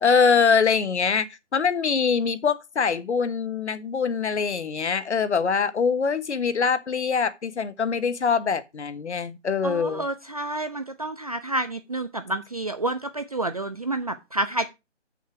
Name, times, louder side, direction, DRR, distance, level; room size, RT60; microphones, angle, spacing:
voice 1, 0.0-1.3 1.5-10.1, left 5 dB, 65° left, 1.2 m, -23 dB
voice 2, 9.6-14.7, right 2 dB, 30° right, 0.5 m, -29 dB
6.6 x 6.5 x 5.8 m
hypercardioid pair, 165°, 36 cm